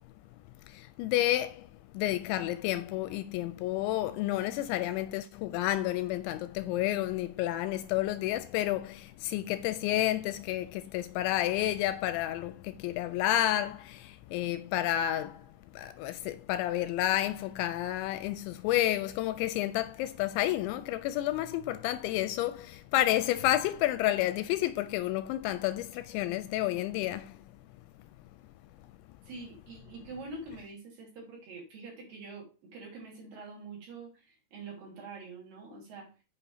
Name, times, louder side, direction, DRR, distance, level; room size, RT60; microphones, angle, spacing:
voice 1, 0.6-27.4 28.2-28.3, left 14 dB, 85° left, 2.7 m, -30 dB
voice 2, 29.2-36.1, right 3 dB, 50° right, 4.1 m, -45 dB
8.3 x 5.5 x 4.9 m
omnidirectional pair, 5.4 m